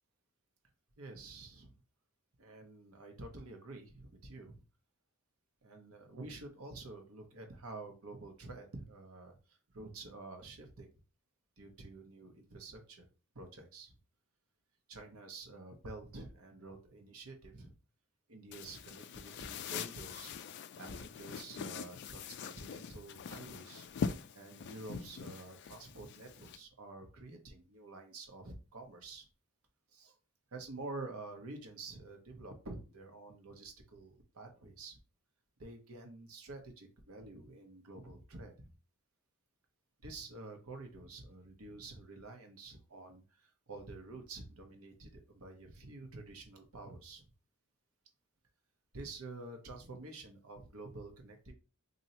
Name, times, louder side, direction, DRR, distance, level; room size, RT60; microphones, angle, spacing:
voice 1, 1.0-1.8 2.4-4.6 5.6-10.9 11.6-13.1 13.3-13.9 14.9-17.7 18.3-20.3 20.8-29.3 29.9-30.1 30.5-35.0 35.6-38.7 40.0-47.3 48.9-51.5, right 2 dB, 75° right, 4 dB, 0.9 m, -49 dB
sound 1, 18.5-26.6, left 6 dB, 50° left, 0.3 m, -43 dB
2.7 x 2.6 x 4.2 m, 0.32 s
head